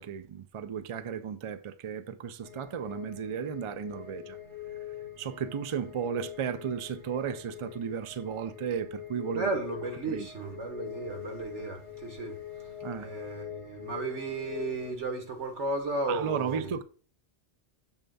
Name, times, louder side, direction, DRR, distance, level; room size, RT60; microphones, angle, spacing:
voice 1, 0.0-4.4 5.2-9.5 10.1-10.3 12.8-13.1 16.1-16.8, right 7 dB, 50° right, 0.3 m, -34 dB
sound 1, 2.4-14.9, left 11 dB, 35° right, 1.2 m, -43 dB
voice 2, 9.1-12.3 13.0-16.7, right 3 dB, 90° right, 1.9 m, -34 dB
7.2 x 3.4 x 5.3 m
omnidirectional pair, 1.2 m